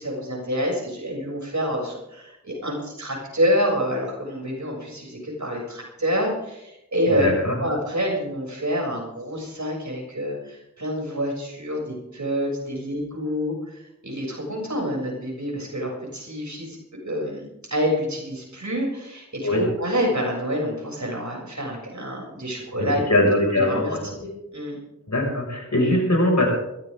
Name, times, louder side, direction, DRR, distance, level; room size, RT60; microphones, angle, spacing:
voice 1, 0.0-7.3 7.6-16.8 17.0-23.0 23.5-24.8, equal, 75° right, -1 dB, 7.2 m, -27 dB
voice 2, 7.1-7.5 19.4-19.6 22.8-24.0 25.1-26.5, left 1 dB, 70° left, 1 dB, 6.1 m, -21 dB
21.5 x 16.5 x 3.7 m, 0.86 s
wide cardioid pair, 40°, 29 cm